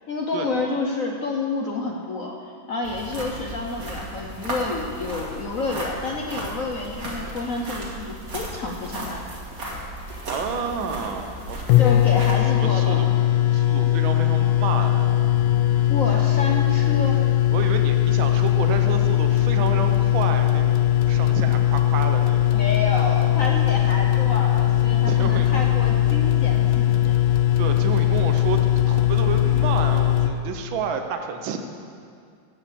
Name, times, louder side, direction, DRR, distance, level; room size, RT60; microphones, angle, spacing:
voice 1, 0.1-9.2 11.8-13.0 15.9-17.2 22.5-27.1, left 3 dB, 55° left, 0 dB, 0.9 m, -29 dB
sound 1, 2.8-12.4, right 1 dB, 45° right, 2.1 m, -35 dB
voice 2, 10.3-11.7 12.5-13.1 13.5-15.3 15.7-16.2 17.5-22.6 25.1-25.6 27.6-28.6 28.9-31.6, right 6 dB, 75° right, 5 dB, 1.6 m, -30 dB
sound 2, 11.4-11.5 11.7-30.3, left 13 dB, 85° left, 1.5 m, -19 dB
16.5 x 5.6 x 6.8 m, 2.3 s
omnidirectional pair, 2.2 m